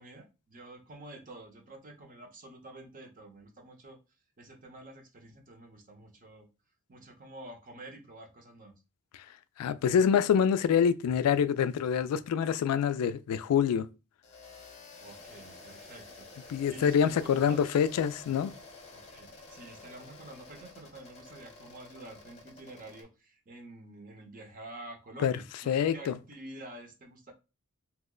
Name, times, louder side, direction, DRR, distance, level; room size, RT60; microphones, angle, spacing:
voice 1, 0.0-4.0 4.4-6.5 6.9-8.8 15.0-17.6 18.9-27.3, right 1 dB, 40° right, 0.7 m, -48 dB
voice 2, 9.6-13.9 16.5-18.5 25.2-25.3 25.7-26.1, left 8 dB, 85° left, 0.3 m, -26 dB
sound 1, 14.2-23.0, left 3 dB, 30° left, 0.8 m, -51 dB
2.9 x 2.1 x 3.7 m
head